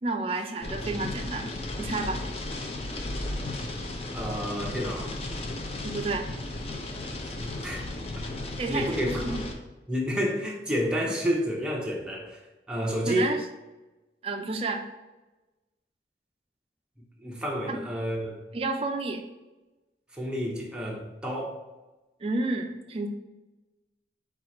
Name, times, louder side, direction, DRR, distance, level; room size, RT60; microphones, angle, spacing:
voice 1, 0.0-2.2 5.8-6.3 8.6-9.4 13.1-13.4 14.2-14.8 17.7-17.8 18.5-19.2 22.2-23.1, right 3 dB, 35° right, 4 dB, 0.4 m, -30 dB
sound 1, 0.6-9.5, left 2 dB, 35° left, 0.4 m, -35 dB
voice 2, 4.1-5.2 7.2-7.4 7.6-7.9 8.7-9.4 9.9-12.4 12.7-13.3 17.2-18.4 20.1-21.6, equal, 5° right, -3 dB, 0.7 m, -30 dB
4.5 x 2.4 x 4.2 m, 1.1 s
head